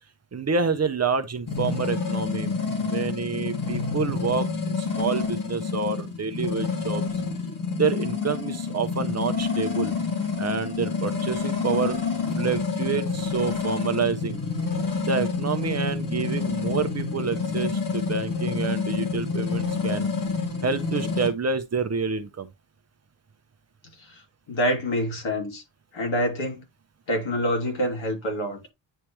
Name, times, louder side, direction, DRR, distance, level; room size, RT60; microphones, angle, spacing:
voice 1, 0.3-2.5 2.8-7.0 7.8-9.9 10.4-12.0 12.4-14.4 15.0-20.1 20.6-22.5, right 5 dB, 35° right, 0.6 m, -28 dB
sound 1, 1.5-21.3, left 4 dB, 45° left, 1.9 m, -28 dB
voice 2, 24.5-25.6 25.9-26.6 27.1-28.6, equal, 85° left, 2.8 m, -26 dB
9.9 x 3.3 x 3.0 m
wide cardioid pair, 160°, 46 cm